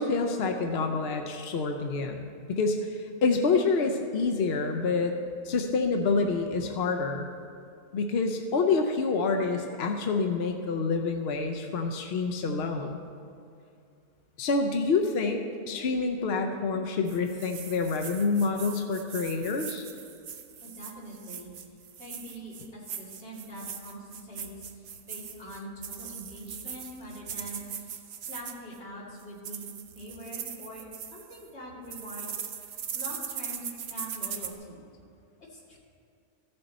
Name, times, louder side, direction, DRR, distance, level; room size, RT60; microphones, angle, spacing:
voice 1, 0.0-5.1 5.4-7.3 7.9-13.0 14.4-19.8, left 4 dB, 60° left, 4 dB, 0.6 m, -27 dB
sound 1, 17.1-28.8 29.2-31.5 31.9-34.5, right 8 dB, 60° right, 0.7 m, -40 dB
voice 2, 20.6-21.5 22.0-28.0 28.3-29.7 29.9-34.8 35.4-35.8, equal, 45° left, -5 dB, 2.3 m, -43 dB
14.5 x 6.7 x 4.1 m, 2.4 s
omnidirectional pair, 1.7 m